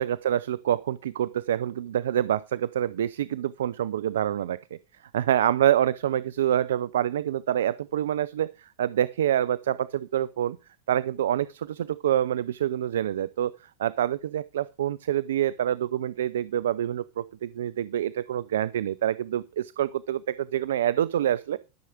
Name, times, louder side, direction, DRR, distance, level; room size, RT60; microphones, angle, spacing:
voice 1, 0.0-4.6 5.1-10.6 10.9-13.5 13.8-21.6, right 11 dB, 85° right, 0.5 m, -26 dB
13.5 x 7.0 x 4.9 m
hypercardioid pair, 105°, 0 cm